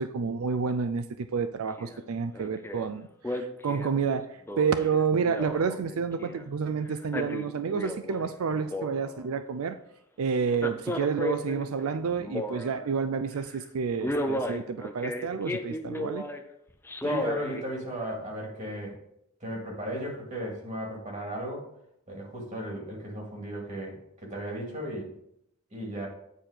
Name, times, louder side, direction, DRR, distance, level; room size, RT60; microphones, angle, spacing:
voice 1, 0.0-9.8 10.2-16.2, right 5 dB, 90° right, 11 dB, 0.4 m, -29 dB
Male speech man speaking, 1.8-2.0 2.3-2.9 3.2-6.5 6.9-8.3 8.5-9.4 10.5-12.9 13.3-13.6 14.0-16.4 16.9-17.6 18.1-18.2, left 1 dB, 10° left, 0.5 m, -34 dB
voice 2, 17.0-19.0 19.4-21.7 22.1-25.1 25.7-26.1, right 1 dB, 35° right, -1 dB, 2.3 m, -36 dB
9.1 x 4.5 x 5.0 m, 0.75 s
head